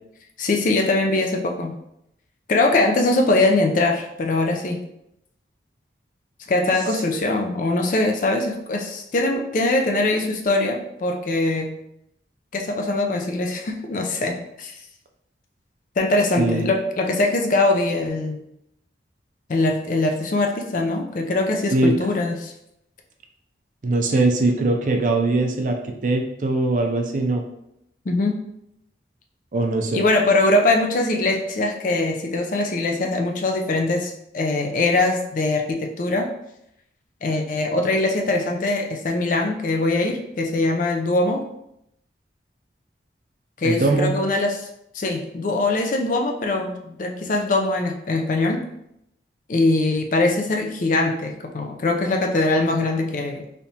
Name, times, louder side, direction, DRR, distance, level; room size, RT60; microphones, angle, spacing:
voice 1, 0.4-1.7 2.5-4.8 6.5-11.8 12.5-14.7 16.0-18.4 19.5-22.5 28.1-28.4 29.9-36.3 37.2-41.4 43.6-44.7 44.9-48.6 49.5-53.4, left 2 dB, 45° left, 3 dB, 0.4 m, -22 dB
voice 2, 16.4-16.7 21.7-22.0 23.8-27.4 29.5-30.0 43.6-44.2, right 2 dB, 45° right, 4 dB, 0.4 m, -21 dB
3.3 x 2.8 x 2.7 m, 0.79 s
head